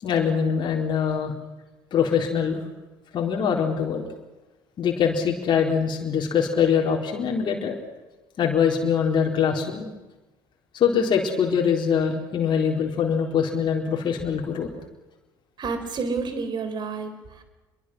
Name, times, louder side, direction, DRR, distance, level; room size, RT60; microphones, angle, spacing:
voice 1, 0.0-1.3 1.9-2.6 3.1-4.1 4.8-7.7 8.4-9.9 10.7-14.7, left 7 dB, 45° left, 0 dB, 4.1 m, -23 dB
voice 2, 15.6-17.4, right 4 dB, 40° right, 9 dB, 4.5 m, -30 dB
27.5 x 22.5 x 6.3 m, 1.1 s
figure-of-eight pair, 60°, 11 cm